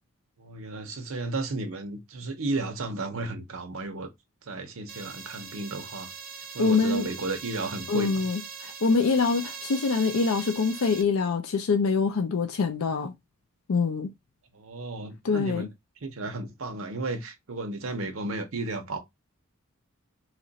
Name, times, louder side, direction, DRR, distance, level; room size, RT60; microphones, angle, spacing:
voice 1, 0.4-4.1 4.4-6.1 6.5-8.2 14.5-15.7 16.0-19.0, right 2 dB, 80° right, 0.7 m, -33 dB
sound 1, 4.9-11.0, right 6 dB, 45° right, 0.7 m, -41 dB
voice 2, 6.6-7.1 7.9-13.1 13.7-14.1 15.2-15.7, left 4 dB, 80° left, 0.5 m, -25 dB
2.9 x 2.4 x 4.0 m
head